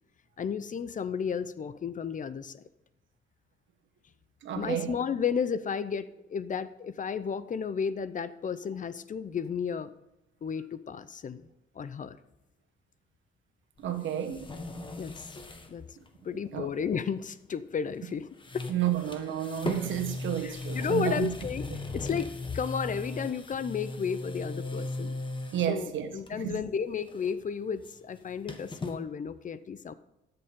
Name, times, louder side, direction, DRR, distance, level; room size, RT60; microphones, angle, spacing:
voice 1, 0.4-2.6 4.6-9.9 10.4-11.5 11.8-12.2 15.0-15.4 15.7-15.8 16.2-18.3 18.5-18.6 20.4-21.7 21.9-25.1 25.7-29.9, left 6 dB, 40° left, 0.6 m, -33 dB
voice 2, 4.4-4.9 13.8-14.4 16.5-16.7 18.7-21.3 21.7-21.8 25.5-26.5, right 10 dB, 70° right, 1.4 m, -31 dB
sound 1, 13.8-15.7 16.0-16.1 17.9-18.1 18.4-25.8 26.2-26.6 26.8-29.0, left 2 dB, 25° left, 1.5 m, -38 dB
13.0 x 6.8 x 3.8 m
cardioid pair, 90°, 20 cm